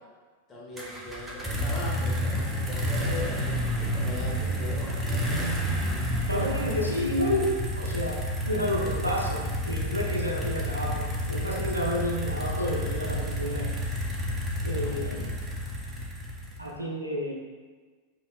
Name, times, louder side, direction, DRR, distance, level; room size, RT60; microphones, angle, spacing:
voice 1, 0.5-5.9 14.7-15.0, left 1 dB, 20° left, -5 dB, 1.2 m, -40 dB
sound 1, 0.8-16.7, equal, 15° right, 0.8 m, -30 dB
voice 2, 6.3-13.7 14.6-15.3 16.6-17.3, equal, 85° right, -1 dB, 0.6 m, -30 dB
6.9 x 2.9 x 2.2 m, 1.5 s
figure-of-eight pair, 90°, 0 cm